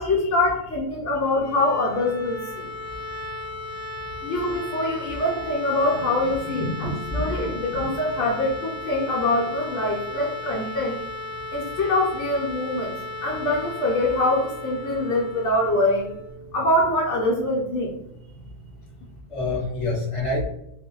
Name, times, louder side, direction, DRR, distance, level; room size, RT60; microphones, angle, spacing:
voice 1, 0.0-2.7 4.2-11.0 11.5-12.9 13.2-16.1 16.5-17.9, left 1 dB, 70° left, -3 dB, 0.8 m, -24 dB
sound 1, 1.3-17.1, left 2 dB, 75° right, 1.0 m, -36 dB
voice 2, 6.5-7.8 19.3-20.5, left 2 dB, 30° left, -4 dB, 0.8 m, -28 dB
2.4 x 2.1 x 2.8 m, 0.78 s
omnidirectional pair, 1.4 m